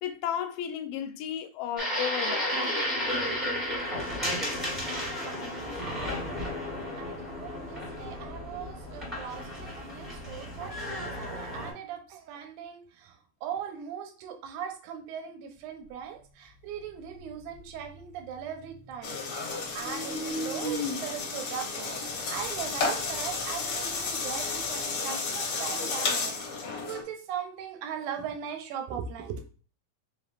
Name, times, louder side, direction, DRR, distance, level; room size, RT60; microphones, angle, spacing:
voice 1, 0.0-2.6, left 10 dB, 90° left, 2.2 m, -33 dB
sound 1, 1.8-11.7, left 1 dB, ahead, 1.0 m, -33 dB
voice 2, 5.1-6.4 7.0-29.5, right 8 dB, 75° right, 2.0 m, -40 dB
sound 2, 16.7-19.3 19.6-24.8, left 1 dB, 45° right, 1.0 m, -40 dB
sound 3, 19.0-27.0, left 4 dB, 70° left, 1.3 m, -32 dB
5.1 x 3.6 x 2.4 m
omnidirectional pair, 3.8 m